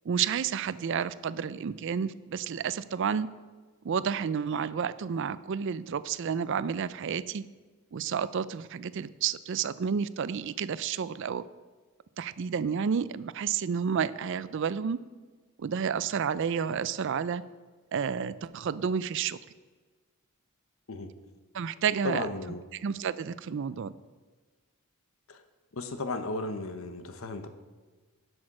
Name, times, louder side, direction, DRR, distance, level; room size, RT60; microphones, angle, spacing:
voice 1, 0.1-3.3 3.8-7.4 7.9-11.4 12.2-15.0 15.6-17.4 17.9-19.4 21.5-22.3 22.7-23.9, right 7 dB, 55° right, 17 dB, 0.4 m, -30 dB
voice 2, 22.0-22.6 25.3-25.4 25.7-27.5, left 2 dB, 65° left, 9 dB, 0.9 m, -35 dB
11.0 x 6.4 x 6.1 m, 1.4 s
head